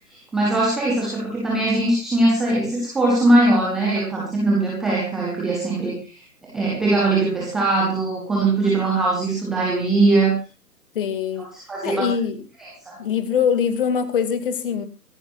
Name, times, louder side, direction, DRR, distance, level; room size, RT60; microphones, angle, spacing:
voice 1, 0.1-10.4 11.5-12.1 12.9-13.0, right 2 dB, ahead, -4 dB, 0.7 m, -21 dB
voice 2, 10.9-11.5 11.8-12.4 13.0-14.9, left 7 dB, 35° left, 12 dB, 2.2 m, -23 dB
24.5 x 11.0 x 2.5 m, 0.31 s
figure-of-eight pair, 135°, 48 cm